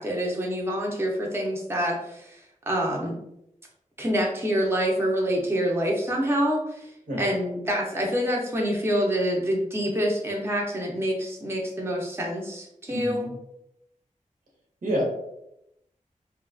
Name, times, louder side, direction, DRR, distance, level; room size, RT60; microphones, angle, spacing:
voice 1, 0.0-3.2 4.0-6.9 7.2-13.3, equal, 20° right, -1 dB, 0.5 m, -26 dB
voice 2, 12.9-13.3 14.8-15.0, equal, 90° right, -2 dB, 0.9 m, -28 dB
2.6 x 2.3 x 2.4 m, 0.80 s
wide cardioid pair, 90°, 14 cm